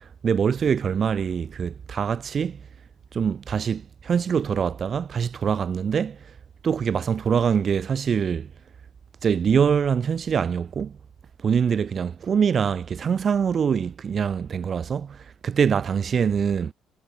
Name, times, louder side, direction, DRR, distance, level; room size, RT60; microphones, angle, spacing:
voice 1, 0.0-2.6 3.1-6.3 6.6-8.5 9.2-11.0 11.4-16.7, right 7 dB, 45° right, 6.0 m, -24 dB
cardioid pair, 90°, 0 cm